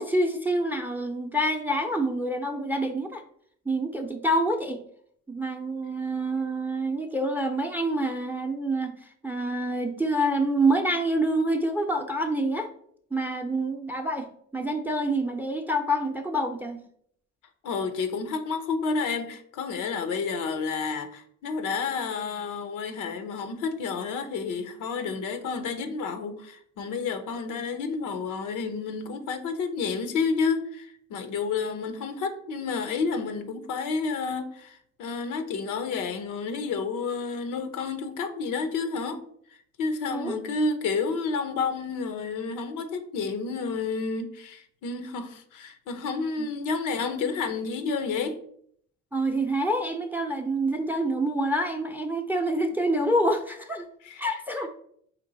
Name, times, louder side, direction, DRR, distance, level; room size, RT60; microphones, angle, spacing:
voice 1, 0.0-3.2 3.7-4.8 5.3-12.7 13.1-14.3 14.5-16.8 40.1-40.4 46.4-46.5 49.1-53.9 54.2-54.7, right 1 dB, 5° right, 6 dB, 0.5 m, -27 dB
voice 2, 17.6-39.2 39.8-48.4 54.0-54.2, left 4 dB, 90° left, 7 dB, 0.8 m, -30 dB
4.5 x 3.0 x 4.0 m, 0.64 s
cardioid pair, 90°, 30 cm